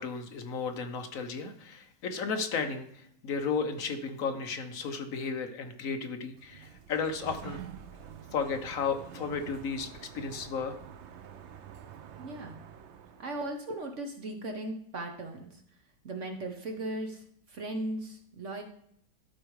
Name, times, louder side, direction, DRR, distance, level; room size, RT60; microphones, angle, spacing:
voice 1, 0.0-7.6 8.3-9.9 10.1-10.8, left 5 dB, 55° left, 6 dB, 1.2 m, -34 dB
Sliding door, 6.2-13.6, right 8 dB, 75° right, 0.6 m, -47 dB
voice 2, 12.2-12.6 13.2-15.6 16.0-18.6, right 2 dB, 50° right, 4 dB, 1.0 m, -37 dB
12.5 x 4.8 x 4.8 m, 0.69 s
omnidirectional pair, 2.0 m